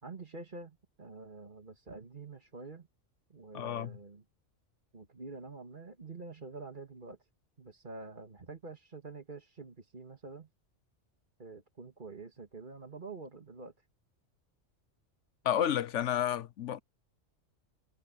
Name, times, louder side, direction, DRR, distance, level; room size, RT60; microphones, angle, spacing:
voice 1, 0.0-2.9 3.3-4.2 4.9-7.2 7.6-10.5 11.4-13.7, right 3 dB, 40° right, 2.2 m, -47 dB
voice 2, 3.5-4.0 15.4-16.8, left 10 dB, 70° left, 1.1 m, -31 dB
omnidirectional pair, 1.3 m